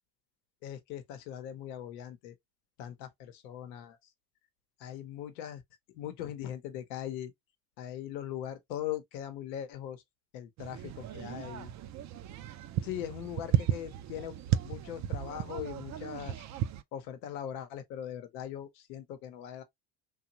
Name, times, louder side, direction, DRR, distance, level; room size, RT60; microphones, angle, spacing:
voice 1, 0.6-2.3 2.8-4.0 4.8-5.6 5.9-7.3 7.8-10.0 10.3-11.7 12.8-14.4 14.6-16.5 16.9-19.6, left 11 dB, 80° left, 0.8 m, -40 dB
sound 1, 10.6-16.8, right 11 dB, 40° right, 0.4 m, -34 dB
2.9 x 2.2 x 2.7 m
hypercardioid pair, 75°, 50 cm